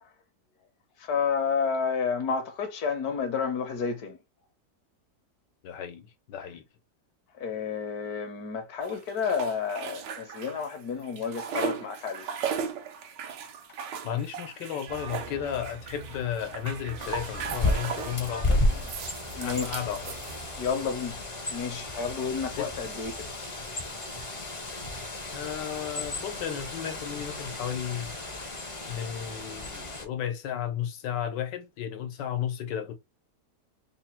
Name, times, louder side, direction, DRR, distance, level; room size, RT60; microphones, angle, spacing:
voice 1, 1.0-4.2 7.3-12.3 19.4-19.8 20.6-21.2 21.5-23.3 28.4-28.5 29.9-30.0, left 6 dB, 70° left, 1.2 m, -30 dB
voice 2, 5.6-6.6 14.0-18.6 19.4-20.2 22.6-22.7 25.3-28.1 28.9-32.9, left 9 dB, 90° left, 1.4 m, -34 dB
sound 1, 8.8-10.8 11.0-18.2 18.7-20.8, right 7 dB, 90° right, 1.4 m, -37 dB
sound 2, 14.9-20.7, right 4 dB, 50° right, 0.6 m, -45 dB
Bird, 17.0-30.1, left 2 dB, 40° left, 0.4 m, -33 dB
3.8 x 2.1 x 4.2 m
omnidirectional pair, 1.8 m